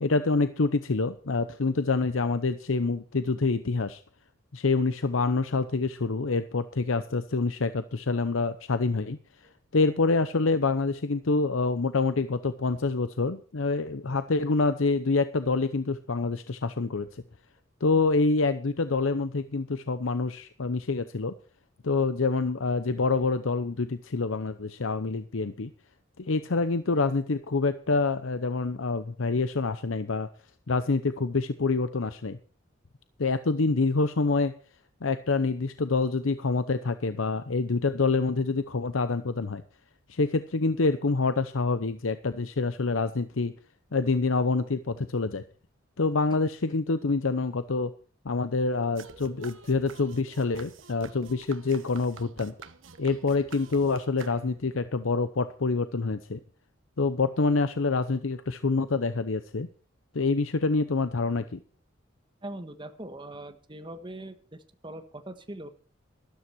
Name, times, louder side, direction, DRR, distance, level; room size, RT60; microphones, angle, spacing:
voice 1, 0.0-4.0 4.5-9.2 9.7-17.2 17.8-21.3 21.8-25.7 26.2-30.3 30.7-32.4 33.2-34.5 35.0-39.6 40.1-43.5 43.9-45.4 46.0-47.9 48.2-52.5 53.0-56.4 57.0-59.7 60.1-61.6, left 3 dB, 85° left, 11 dB, 0.8 m, -26 dB
sound 1, 49.0-54.8, right 4 dB, 70° right, 1.3 m, -48 dB
voice 2, 62.4-65.7, right 1 dB, 25° right, 7 dB, 1.4 m, -41 dB
13.0 x 12.5 x 4.6 m, 0.41 s
head